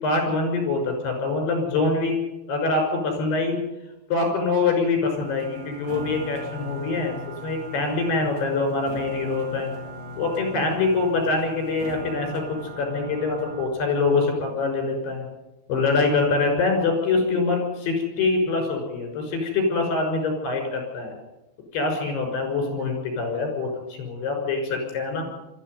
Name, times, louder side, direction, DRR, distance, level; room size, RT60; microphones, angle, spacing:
voice 1, 0.0-2.2 2.5-3.6 4.1-7.1 7.4-9.7 10.2-15.3 15.7-21.1 21.7-25.2, left 3 dB, 65° left, 3 dB, 8.1 m, -24 dB
sound 1, 5.1-13.7, right 1 dB, 55° right, 4.2 m, -38 dB
23.0 x 14.0 x 9.4 m, 0.99 s
omnidirectional pair, 5.2 m